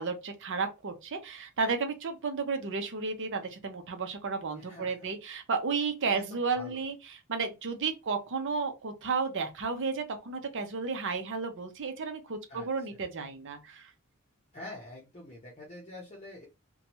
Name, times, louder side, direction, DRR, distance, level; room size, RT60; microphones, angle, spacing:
voice 1, 0.0-13.9, right 4 dB, 60° right, 0.7 m, -33 dB
voice 2, 4.5-4.9 6.0-6.3 6.6-6.8 12.5-12.7 14.5-16.5, left 1 dB, 30° left, 0.7 m, -45 dB
2.8 x 2.2 x 2.8 m
head